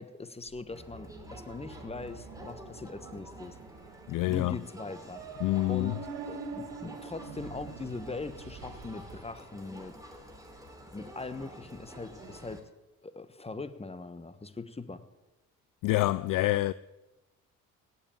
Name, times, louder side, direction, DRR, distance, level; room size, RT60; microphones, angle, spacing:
voice 1, 0.0-3.6 4.3-5.2 5.7-6.0 6.2-9.9 10.9-12.6 13.0-15.0, left 3 dB, 15° left, 1.2 m, -41 dB
Crowd, 0.7-12.6, right 1 dB, 10° right, 3.1 m, -49 dB
sound 1, 1.1-9.2, right 5 dB, 75° right, 1.4 m, -46 dB
voice 2, 4.1-4.6 5.4-6.0 15.8-16.7, left 18 dB, 50° left, 0.4 m, -27 dB
17.0 x 5.7 x 9.0 m
hypercardioid pair, 50°, 44 cm